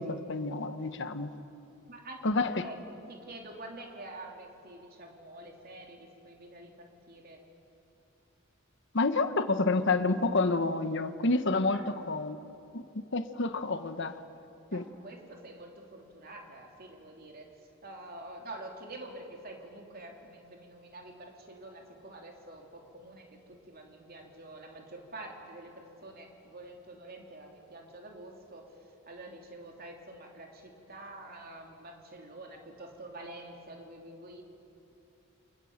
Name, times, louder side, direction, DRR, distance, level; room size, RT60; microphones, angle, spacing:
voice 1, 0.0-1.3 2.2-2.7 8.9-12.4 12.7-14.2 14.7-14.9, left 3 dB, 60° left, 10 dB, 1.2 m, -29 dB
voice 2, 1.9-7.4 11.7-12.1 14.7-17.5 17.8-28.7 29.1-34.4, right 2 dB, 45° right, 1 dB, 3.2 m, -47 dB
29.0 x 25.5 x 7.4 m, 2.8 s
head